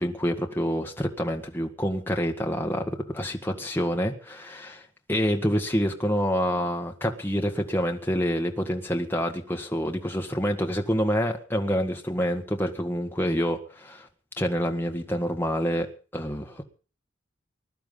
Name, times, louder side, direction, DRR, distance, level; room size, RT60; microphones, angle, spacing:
voice 1, 0.0-4.8 5.1-14.1 14.4-15.9 16.1-16.6, equal, 10° left, 2 dB, 1.7 m, -27 dB
20.5 x 12.0 x 5.5 m, 0.39 s
head